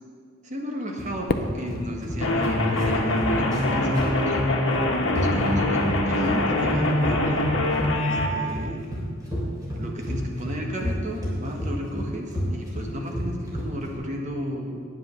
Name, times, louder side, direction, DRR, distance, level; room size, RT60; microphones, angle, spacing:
voice 1, 0.4-4.3 5.1-7.4 7.9-8.9 9.8-14.8, equal, 35° right, 1 dB, 1.3 m, -33 dB
sound 1, 1.0-14.0, equal, 20° right, 3.2 m, -31 dB
Fireworks, 1.3-3.6, left 2 dB, 45° left, 0.5 m, -33 dB
sound 2, 2.2-8.3, left 1 dB, 75° left, 1.3 m, -23 dB
9.6 x 7.6 x 6.6 m, 2.1 s
head